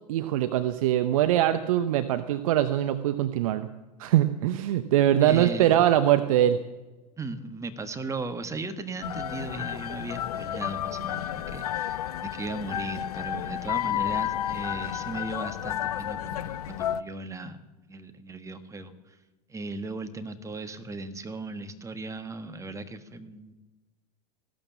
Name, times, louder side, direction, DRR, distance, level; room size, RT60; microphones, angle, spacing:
voice 1, 0.1-3.7 4.0-6.6, right 12 dB, 60° right, 11 dB, 0.9 m, -23 dB
voice 2, 5.2-5.8 7.2-17.6 17.9-19.2 19.5-23.5, right 2 dB, 15° right, 9 dB, 1.4 m, -37 dB
sound 1, 9.0-17.0, left 11 dB, 70° left, 0.6 m, -31 dB
15.5 x 12.5 x 7.3 m, 1.1 s
figure-of-eight pair, 85°, 20 cm